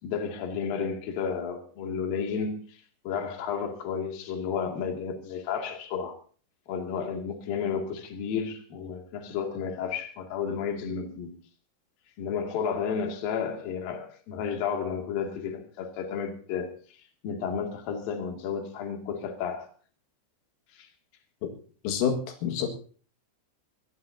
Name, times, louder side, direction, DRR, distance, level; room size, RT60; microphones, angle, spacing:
voice 1, 0.0-6.2 6.7-11.4 12.2-16.7 17.2-19.7 20.7-20.9, left 6 dB, 55° left, 3.7 m, -32 dB
voice 2, 21.8-22.7, left 7 dB, 90° left, 4.5 m, -27 dB
24.5 x 15.5 x 2.8 m
omnidirectional pair, 5.7 m